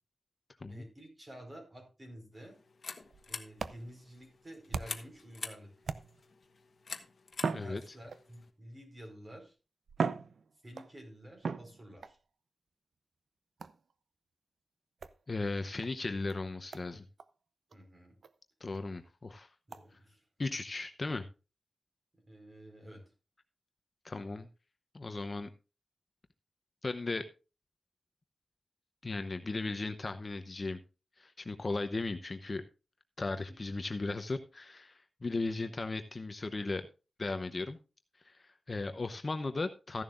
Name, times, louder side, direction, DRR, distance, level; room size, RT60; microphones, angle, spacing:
voice 1, 0.7-2.5 3.3-5.7 7.6-9.5 10.6-12.2 17.7-18.2 19.7-20.2 22.3-23.1 33.5-33.6, equal, 30° right, 3 dB, 4.6 m, -50 dB
sound 1, 2.3-8.5, left 4 dB, 60° left, 1.1 m, -47 dB
sound 2, 3.0-5.2 5.8-6.4 7.3-8.4 9.3-9.4 9.9-11.0 11.4-12.2 13.6-13.9 15.0-15.2 15.8-15.9 16.3-16.4 16.7-16.9 17.2-17.3 17.7-17.8 18.2-18.3 18.7-18.8 19.7-19.8, right 5 dB, 80° right, 0.6 m, -38 dB
voice 2, 15.3-17.1 18.6-19.5 20.4-21.2 24.0-24.5 24.9-25.5 26.8-27.2 29.0-30.8 31.2-32.6 33.2-36.8 37.2-37.8 38.2-40.0, left 3 dB, 35° left, 8 dB, 0.8 m, -36 dB
14.5 x 11.0 x 2.5 m, 0.31 s
wide cardioid pair, 130°, 0 cm